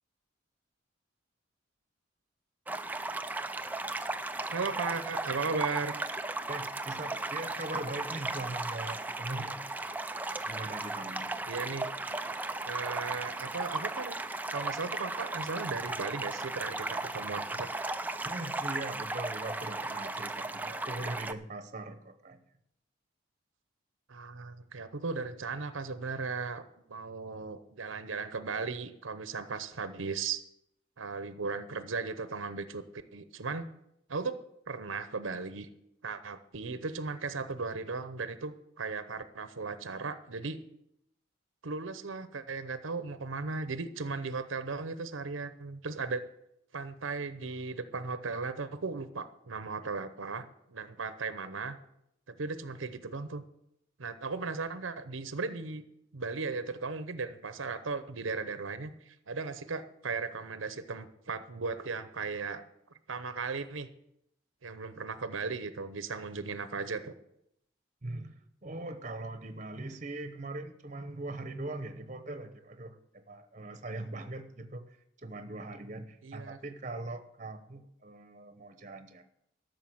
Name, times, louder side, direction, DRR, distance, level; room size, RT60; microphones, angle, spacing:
sound 1, 2.7-21.3, right 2 dB, 10° right, 0.4 m, -36 dB
voice 1, 4.5-5.9 11.5-11.9 12.6-14.2 14.5-17.7 24.1-26.6 26.9-30.4 31.0-32.8 33.1-33.7 34.1-34.4 34.7-35.7 36.0-40.6 41.6-46.2 46.7-51.8 52.3-53.4 54.0-55.8 56.1-62.6 63.1-63.9 64.6-67.1 76.2-76.6, right 4 dB, 85° right, 12 dB, 0.8 m, -36 dB
voice 2, 6.5-9.6 10.4-11.4 18.2-22.4 68.0-79.2, right 2 dB, 40° right, 9 dB, 0.9 m, -41 dB
12.5 x 6.6 x 7.9 m, 0.78 s
head